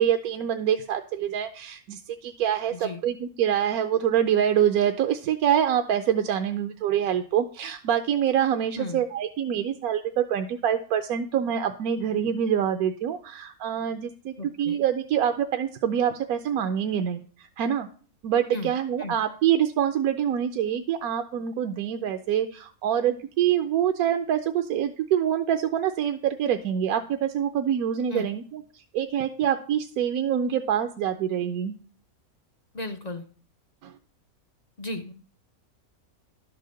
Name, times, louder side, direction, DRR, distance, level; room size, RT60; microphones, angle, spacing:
voice 1, 0.0-17.9 18.2-31.8 33.8-34.0, right 9 dB, 80° right, 7 dB, 1.1 m, -25 dB
voice 2, 2.7-3.0 8.8-9.0 14.4-14.8 18.5-18.7 19.0-19.2 28.1-28.3 32.7-33.2 34.8-35.1, left 2 dB, 50° left, 7 dB, 0.4 m, -35 dB
11.5 x 4.7 x 6.4 m, 0.43 s
omnidirectional pair, 1.6 m